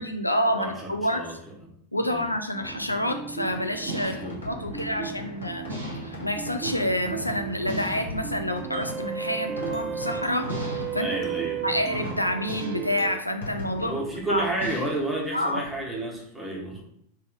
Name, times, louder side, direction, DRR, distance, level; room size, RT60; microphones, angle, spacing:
voice 1, 0.0-1.2 1.9-5.7 6.0-11.1 11.6-14.0 14.3-14.4 15.3-15.6, left 1 dB, 85° left, 6 dB, 0.5 m, -28 dB
voice 2, 0.5-1.3 2.1-2.3 3.9-4.8 10.9-11.7 13.8-16.8, right 1 dB, 5° right, -3 dB, 1.4 m, -32 dB
sound 1, 2.0-2.1 3.9-4.5 5.7-6.3 7.7-8.3 10.5-11.1 12.5-13.0 14.6-15.2, equal, 85° right, 1.5 m, -37 dB
sound 2, 2.5-13.2, right 7 dB, 35° right, 0.3 m, -35 dB
Fireworks, 2.6-16.1, left 1 dB, 65° left, 1.4 m, -41 dB
3.4 x 3.2 x 4.8 m, 0.67 s
figure-of-eight pair, 90°, 0 cm